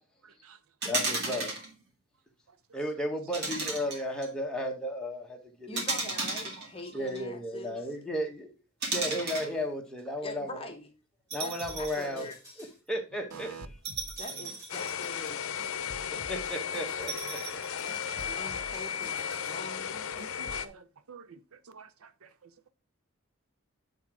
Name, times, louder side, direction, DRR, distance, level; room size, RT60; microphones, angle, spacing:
voice 1, 0.2-0.6 6.6-6.7 13.3-13.7 15.7-15.8 18.1-18.4 20.4-21.4 21.7-22.5, right 6 dB, 80° right, 0.6 m, -49 dB
voice 2, 0.8-1.5 2.7-5.8 6.9-8.5 8.9-10.6 11.3-12.3 12.6-13.7 16.1-17.6, equal, 5° left, 1.1 m, -34 dB
sound 1, 0.8-1.7 3.3-4.3 5.8-7.2 8.8-9.5 11.3-12.1 12.5-12.6 13.9-15.5 17.1-18.2, right 3 dB, 50° right, 2.0 m, -34 dB
voice 3, 5.7-7.9 10.2-10.9 11.4-12.7 14.2-15.7 18.3-20.1, left 2 dB, 25° left, 1.0 m, -44 dB
sound 2, 11.6-12.8 13.3-15.1 15.6-17.3 17.9-19.6 20.2-20.7, equal, 15° right, 2.3 m, -49 dB
sound 3, 14.7-20.7, left 8 dB, 75° left, 0.6 m, -35 dB
8.1 x 3.9 x 4.7 m
head